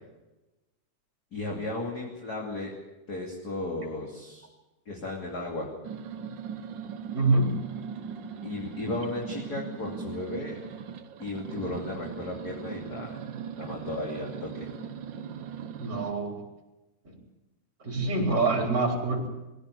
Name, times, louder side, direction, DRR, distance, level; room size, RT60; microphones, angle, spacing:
voice 1, 1.3-2.7 3.1-4.4 4.9-5.7 8.4-10.6 11.2-13.2 13.6-14.7, left 2 dB, 30° left, 0 dB, 3.0 m, -35 dB
sound 1, 5.8-16.1, right 7 dB, 75° right, 1.0 m, -39 dB
voice 2, 7.1-7.6 15.8-16.4 17.0-17.1 17.8-19.3, right 3 dB, 30° right, 1 dB, 4.8 m, -25 dB
22.5 x 16.0 x 8.4 m, 1.0 s
omnidirectional pair, 3.6 m